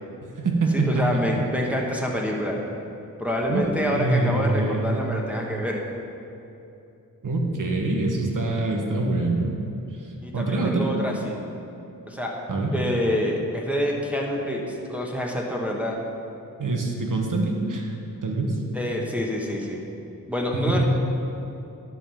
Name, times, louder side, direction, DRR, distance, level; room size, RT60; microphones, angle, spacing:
voice 1, 0.2-1.2 3.5-5.0 7.2-9.5 10.3-10.9 12.5-12.7 16.6-17.9 18.2-18.6 20.5-20.9, right 2 dB, 60° right, 1 dB, 1.4 m, -24 dB
voice 2, 0.7-2.6 3.2-5.8 10.2-11.4 12.1-12.4 12.7-16.0 18.7-19.8 20.3-20.9, equal, 5° right, -2 dB, 1.2 m, -27 dB
11.0 x 5.3 x 5.8 m, 2.8 s
cardioid pair, 70°, 35 cm